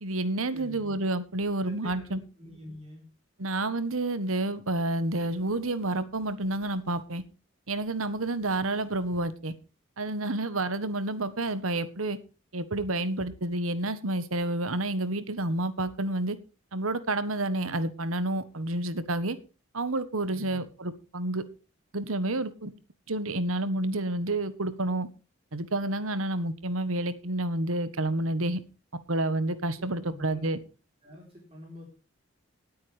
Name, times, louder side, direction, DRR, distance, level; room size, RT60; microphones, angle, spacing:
voice 1, 0.0-2.2 3.4-7.2 7.7-9.5 10.0-12.2 12.5-16.4 16.7-19.4 19.7-21.4 21.9-22.7 23.1-25.1 25.5-28.6 29.1-30.6, right 2 dB, 90° right, 14 dB, 1.4 m, -29 dB
voice 2, 0.5-1.0 1.6-3.0 20.3-20.7 29.8-30.5 31.0-31.9, left 1 dB, 30° right, -1 dB, 4.0 m, -47 dB
18.5 x 8.8 x 3.5 m, 0.33 s
head